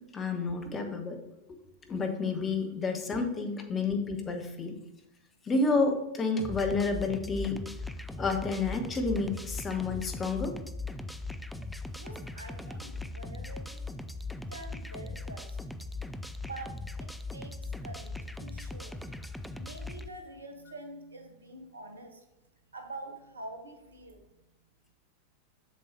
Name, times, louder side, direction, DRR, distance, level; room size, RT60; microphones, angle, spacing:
voice 1, 0.1-1.2 1.8-4.8 5.4-7.6 8.2-10.6, left 3 dB, 20° left, 5 dB, 1.1 m, -30 dB
sound 1, 6.4-20.1, left 2 dB, 5° left, 0.4 m, -39 dB
voice 2, 12.0-14.0 14.5-15.6 16.4-19.0 19.6-22.2 22.7-24.3, right 2 dB, 75° right, 5 dB, 1.1 m, -46 dB
7.3 x 6.7 x 2.8 m, 0.92 s
figure-of-eight pair, 90°, 0 cm